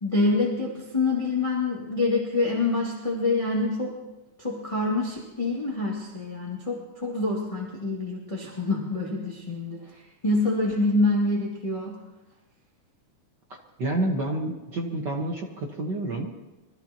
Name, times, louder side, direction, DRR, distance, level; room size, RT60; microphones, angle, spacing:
voice 1, 0.0-3.9 4.4-9.8 10.2-12.0, left 2 dB, 10° left, -4 dB, 2.0 m, -26 dB
voice 2, 13.8-16.3, right 2 dB, 50° right, 0 dB, 1.4 m, -28 dB
24.5 x 14.5 x 3.0 m, 1.1 s
omnidirectional pair, 3.5 m